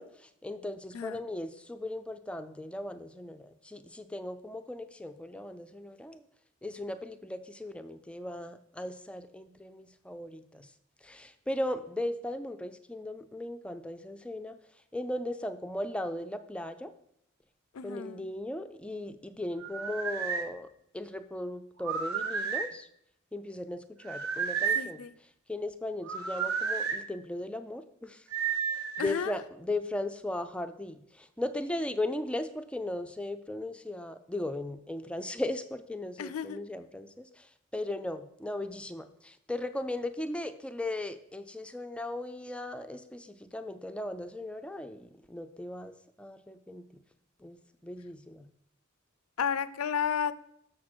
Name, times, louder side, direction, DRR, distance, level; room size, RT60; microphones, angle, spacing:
voice 1, 0.0-6.2 6.6-10.7 11.0-14.6 14.9-16.9 17.8-22.9 23.3-25.0 25.5-28.2 28.7-47.0 47.4-48.5, left 1 dB, 5° left, 9 dB, 0.4 m, -37 dB
voice 2, 17.7-18.2 24.8-25.1 29.0-29.4 36.2-36.6 49.4-50.3, left 7 dB, 85° left, 15 dB, 0.4 m, -32 dB
sound 1, 19.6-20.5 21.8-22.7 24.0-24.9 26.1-27.0 28.3-29.2, right 6 dB, 90° right, 0.9 m, -32 dB
6.7 x 6.2 x 4.4 m, 0.73 s
head